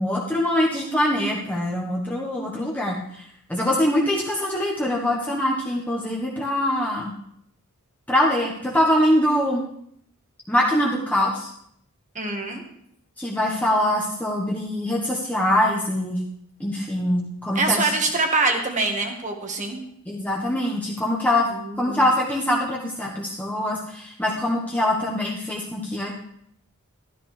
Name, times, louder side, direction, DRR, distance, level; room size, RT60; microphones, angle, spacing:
voice 1, 0.0-3.2 3.5-7.1 8.1-9.6 10.5-11.5 13.2-16.2 16.6-17.9 20.1-21.5 21.8-26.1, left 1 dB, 5° left, -3 dB, 1.2 m, -23 dB
voice 2, 12.1-12.6 17.5-19.8 21.5-22.1, right 3 dB, 35° right, 4 dB, 1.6 m, -24 dB
13.0 x 12.5 x 3.3 m, 0.70 s
head